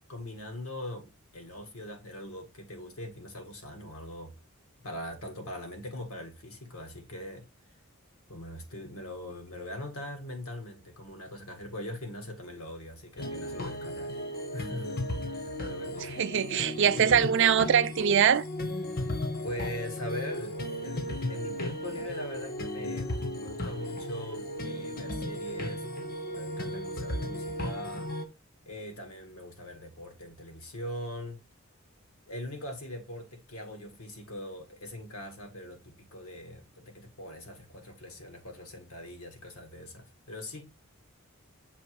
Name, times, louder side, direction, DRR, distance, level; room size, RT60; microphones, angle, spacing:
voice 1, 0.1-4.4 4.8-7.5 8.3-14.2 14.5-16.3 18.9-25.9 26.3-28.1 28.7-31.4 32.3-40.6, left 1 dB, 85° left, 1.7 m, -41 dB
sound 1, 13.2-28.3, left 1 dB, 45° left, 0.9 m, -35 dB
voice 2, 16.2-18.5, right 8 dB, 55° right, 0.4 m, -23 dB
6.8 x 3.0 x 4.7 m
head